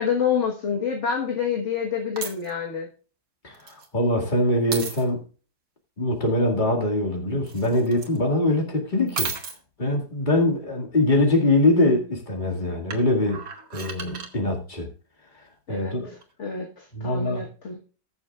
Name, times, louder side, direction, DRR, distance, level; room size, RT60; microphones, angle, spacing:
voice 1, 0.0-2.9 15.7-17.8, left 7 dB, 45° left, 1.6 m, -27 dB
sound 1, 2.2-2.5 3.5-3.9 4.7-5.0 7.5-8.2 9.1-9.6 12.9-14.3 16.2-16.3, right 5 dB, 55° right, 1.9 m, -33 dB
voice 2, 3.4-5.2 6.0-9.3 9.8-13.4 13.7-14.9 15.7-16.1 16.9-17.4, left 1 dB, 25° left, 2.3 m, -23 dB
20.5 x 6.9 x 2.4 m
omnidirectional pair, 1.8 m